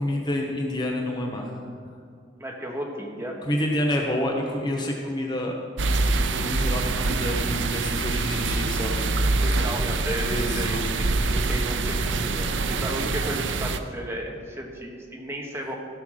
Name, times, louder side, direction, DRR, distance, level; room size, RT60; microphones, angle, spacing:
voice 1, 0.0-1.6 3.5-5.6 6.3-9.2 10.2-10.8, left 1 dB, 25° left, 1 dB, 1.0 m, -28 dB
voice 2, 2.4-3.4 9.4-15.7, right 1 dB, 15° right, -1 dB, 1.5 m, -34 dB
sound 1, 5.8-13.8, right 3 dB, 85° right, 0.6 m, -25 dB
16.0 x 5.8 x 6.3 m, 2.3 s
head